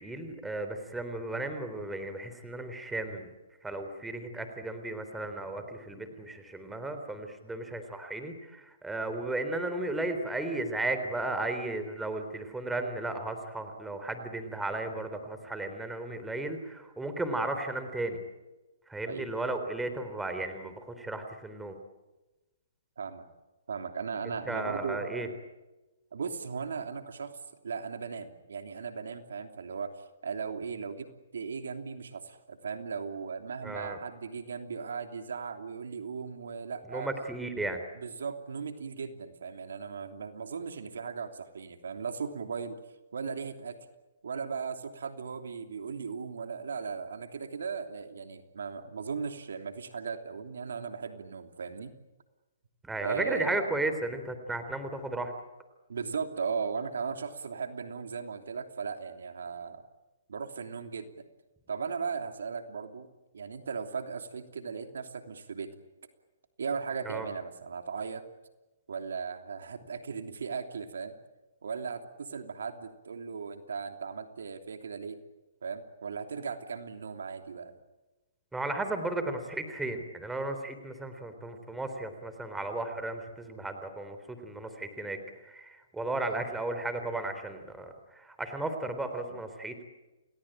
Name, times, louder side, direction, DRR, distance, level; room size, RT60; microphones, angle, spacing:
voice 1, 0.0-3.3 3.6-18.2 18.9-21.8 24.5-25.3 33.6-34.0 36.9-37.8 52.8-55.3 67.1-67.3 78.5-85.2 85.5-89.8, right 2 dB, 5° right, 7 dB, 3.7 m, -35 dB
voice 2, 23.7-25.4 26.1-27.4 27.6-31.1 31.3-37.1 37.6-42.8 43.1-43.8 44.2-51.9 53.0-53.6 55.9-59.8 60.3-61.2 61.7-63.1 63.3-65.7 66.6-68.2 68.9-71.1 71.6-75.2 75.6-77.7 89.2-89.4, right 5 dB, 80° right, 7 dB, 3.1 m, -37 dB
29.0 x 18.5 x 9.0 m, 1.1 s
hypercardioid pair, 145°, 0 cm